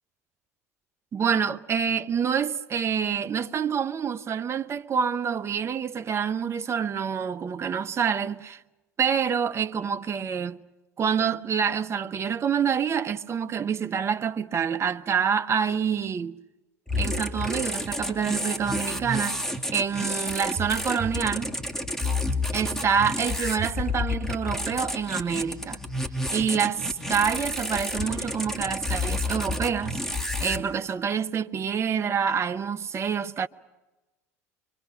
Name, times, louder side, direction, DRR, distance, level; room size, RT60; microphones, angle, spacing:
voice 1, 1.1-8.6 9.0-10.6 11.0-16.4 17.0-19.4 19.7-21.6 22.5-25.8 26.3-30.0 30.4-33.5, right 7 dB, 30° right, 1.0 m, -27 dB
sound 1, 16.9-30.6, left 1 dB, 5° left, 2.7 m, -30 dB
25.0 x 24.5 x 6.4 m
hypercardioid pair, 70°, 8 cm